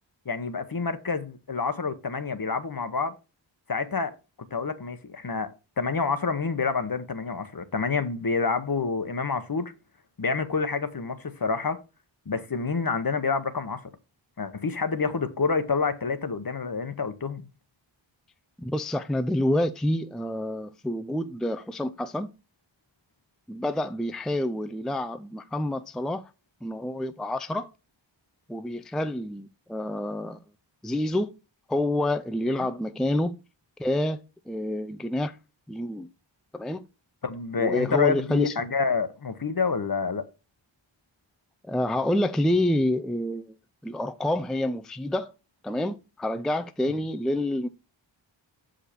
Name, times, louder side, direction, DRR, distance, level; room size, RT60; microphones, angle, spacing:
voice 1, 0.3-3.1 3.7-4.1 4.5-9.7 10.2-11.8 12.3-13.8 14.4-17.5 32.5-32.6 37.2-40.3, left 4 dB, 45° left, 1.0 m, -28 dB
voice 2, 18.6-22.3 23.5-26.2 26.6-27.7 28.5-30.4 30.8-31.3 31.7-33.4 33.8-35.4 35.7-36.1 36.5-36.8 37.6-38.5 41.6-43.5 43.8-45.3 45.6-47.7, left 1 dB, ahead, 0.4 m, -28 dB
6.5 x 5.1 x 4.2 m
wide cardioid pair, 45°, 47 cm